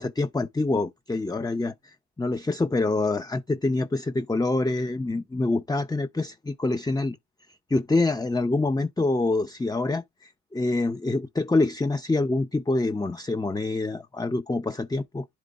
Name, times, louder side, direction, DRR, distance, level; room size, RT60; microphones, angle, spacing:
voice 1, 0.0-7.2 7.7-15.3, left 2 dB, 10° left, 0.7 m, -26 dB
11.0 x 4.6 x 2.4 m
cardioid pair, 70°, 39 cm